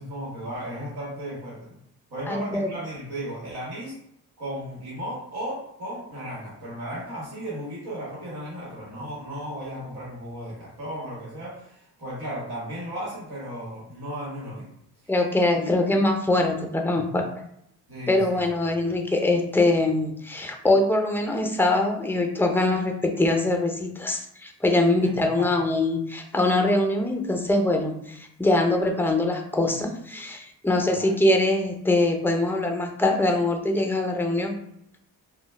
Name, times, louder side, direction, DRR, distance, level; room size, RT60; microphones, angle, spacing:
voice 1, 0.0-1.8 2.1-4.0 4.4-14.7 15.0-15.1 15.5-16.0 17.9-18.8 25.0-25.6 30.9-31.2, equal, 90° right, -6 dB, 1.2 m, -35 dB
voice 2, 2.3-2.7 15.1-17.3 18.1-34.6, left 2 dB, 5° left, 3 dB, 0.5 m, -23 dB
2.2 x 2.2 x 3.1 m, 0.73 s
supercardioid pair, 55°, 38 cm